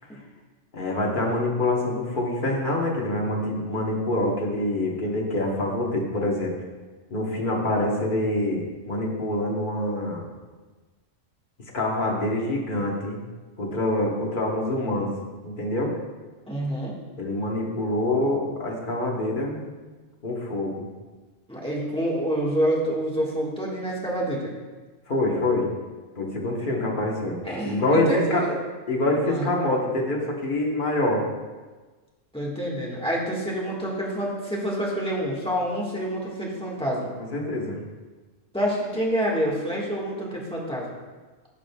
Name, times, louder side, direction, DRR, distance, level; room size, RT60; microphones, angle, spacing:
voice 1, 0.7-6.5 7.1-10.2 11.7-13.2 13.6-15.1 15.4-15.9 17.2-19.6 20.2-20.9 25.1-25.7 26.2-28.5 28.9-31.3 37.3-37.8, left 1 dB, 40° left, -1 dB, 1.3 m, -25 dB
voice 2, 16.5-17.0 21.5-24.5 27.4-28.5 29.2-29.5 32.3-37.1 38.5-40.9, equal, 5° left, -5 dB, 1.5 m, -27 dB
14.0 x 5.0 x 2.3 m, 1.3 s
omnidirectional pair, 1.4 m